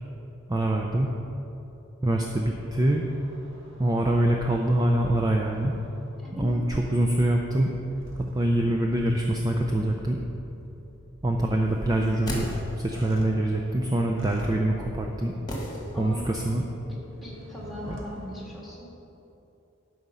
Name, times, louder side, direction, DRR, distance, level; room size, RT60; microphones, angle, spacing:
voice 1, 0.5-1.1 2.0-3.0 3.8-5.8 6.4-7.7 8.3-10.2 11.2-12.5 12.7-15.3 16.0-16.6 17.9-18.0, right 1 dB, 20° right, 1 dB, 0.5 m, -24 dB
sound 1, 2.7-6.4 7.0-18.6, equal, 65° right, 1.4 m, -46 dB
voice 2, 6.2-6.6 15.9-16.2 16.9-18.9, left 1 dB, ahead, -4 dB, 1.8 m, -41 dB
sound 2, 11.9-13.1 15.5-16.4 16.6-16.7, equal, 20° left, 1.6 m, -35 dB
12.0 x 4.9 x 5.6 m, 2.9 s
head